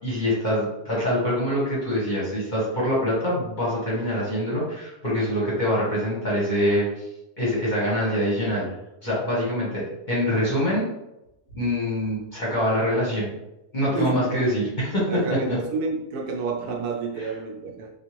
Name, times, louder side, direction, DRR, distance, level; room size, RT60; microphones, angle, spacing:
voice 1, 0.0-6.9 7.4-8.6 9.0-10.9 11.5-13.3 13.7-15.2 17.2-17.3, equal, 35° left, -6 dB, 0.9 m, -24 dB
voice 2, 13.9-14.5 15.1-17.9, right 4 dB, 75° right, 1 dB, 1.1 m, -29 dB
3.6 x 2.4 x 3.0 m, 0.89 s
omnidirectional pair, 1.7 m